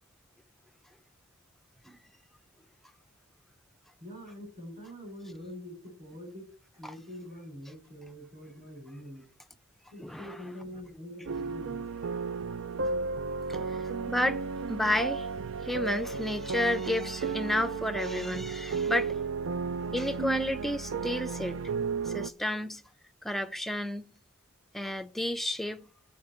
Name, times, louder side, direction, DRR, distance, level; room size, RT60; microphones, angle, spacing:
voice 1, 4.0-6.5 6.7-9.2 9.9-11.8, equal, 40° right, 5.5 m, -44 dB
voice 2, 10.0-10.4 13.5-14.4 14.7-15.3 15.6-19.2 19.9-21.6 22.1-22.8 23.2-24.1 24.7-25.9, left 1 dB, ahead, 0.4 m, -31 dB
sound 1, 11.3-22.3, right 4 dB, 65° right, 0.4 m, -33 dB
7.5 x 5.1 x 6.7 m
head